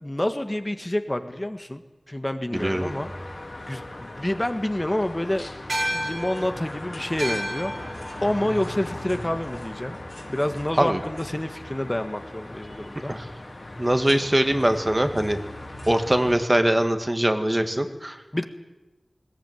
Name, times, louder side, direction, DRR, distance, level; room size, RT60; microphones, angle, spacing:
voice 1, 0.0-1.8 2.1-3.1 3.7-5.5 5.7-7.7 8.2-10.0 10.3-13.1 18.3-18.4, left 1 dB, 25° left, 7 dB, 1.6 m, -28 dB
sound 1, 2.5-16.3, left 1 dB, 55° left, 4.1 m, -38 dB
voice 2, 2.6-2.9 10.8-11.0 13.1-13.3 13.8-15.4 15.9-18.2, right 1 dB, 25° right, 7 dB, 2.0 m, -22 dB
sound 2, 5.7-10.4, right 1 dB, 80° right, 6.3 m, -34 dB
20.5 x 17.5 x 9.2 m, 1.1 s
wide cardioid pair, 45°, 0 cm